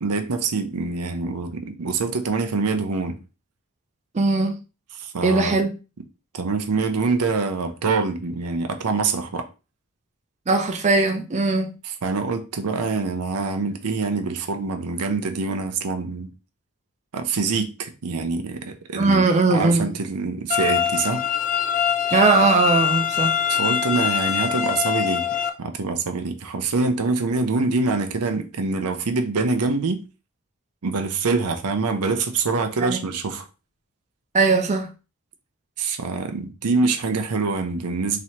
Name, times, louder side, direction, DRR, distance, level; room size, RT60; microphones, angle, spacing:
voice 1, 0.0-3.2 4.9-5.5 6.3-9.4 11.8-16.3 17.1-21.3 23.5-25.3 25.6-30.0 30.8-33.5 35.8-38.2, right 4 dB, 80° right, 0.7 m, -25 dB
voice 2, 4.1-4.6 5.2-5.8 10.5-11.7 19.0-19.9 22.1-23.4 32.8-33.0 34.3-34.9, right 3 dB, 30° right, 0.5 m, -19 dB
sound 1, 20.5-25.5, left 8 dB, 40° left, 0.4 m, -23 dB
3.1 x 2.8 x 4.3 m
head